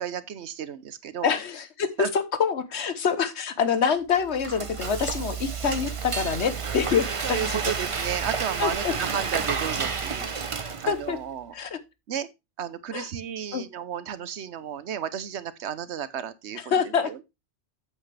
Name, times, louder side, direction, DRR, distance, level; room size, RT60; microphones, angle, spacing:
voice 1, 0.0-1.3 2.0-2.1 7.2-10.5 10.8-11.5 12.1-12.3 12.6-17.2, right 8 dB, 70° right, 1.1 m, -33 dB
voice 2, 1.2-7.6 8.6-8.9 10.6-11.2 11.5-11.8 12.9-13.1 13.5-13.6 16.7-17.1, left 6 dB, 70° left, 1.3 m, -26 dB
Frying (food), 4.1-11.2, right 5 dB, 35° right, 0.7 m, -30 dB
8.6 x 8.0 x 3.3 m
omnidirectional pair, 1.2 m